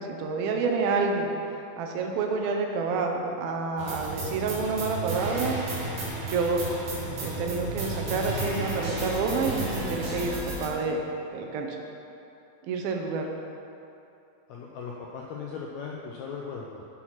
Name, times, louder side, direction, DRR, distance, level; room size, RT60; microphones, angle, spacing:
voice 1, 0.0-1.3 1.8-5.6 6.3-6.6 7.2-11.0 11.3-11.8 12.7-13.3, right 4 dB, 90° right, 2 dB, 2.8 m, -28 dB
sound 1, 3.8-10.7, right 2 dB, 75° right, 3.6 m, -33 dB
voice 2, 14.5-16.8, left 5 dB, 85° left, -2 dB, 1.6 m, -38 dB
10.5 x 6.2 x 5.8 m, 2.8 s
omnidirectional pair, 4.1 m